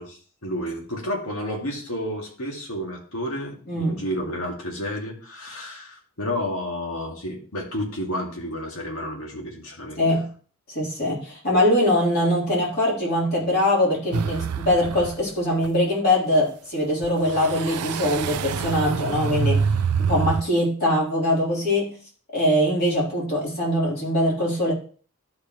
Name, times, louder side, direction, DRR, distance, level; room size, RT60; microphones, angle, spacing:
voice 1, 0.0-10.0, equal, 70° left, -1 dB, 2.2 m, -31 dB
voice 2, 3.7-4.0 10.0-10.3 10.7-19.7 20.0-21.9 22.3-24.7, left 1 dB, 45° left, -4 dB, 3.3 m, -22 dB
sound 1, 14.1-15.3 15.6-15.7 17.0-20.4, right 5 dB, 85° right, 0.5 m, -26 dB
11.5 x 4.9 x 3.0 m, 0.43 s
head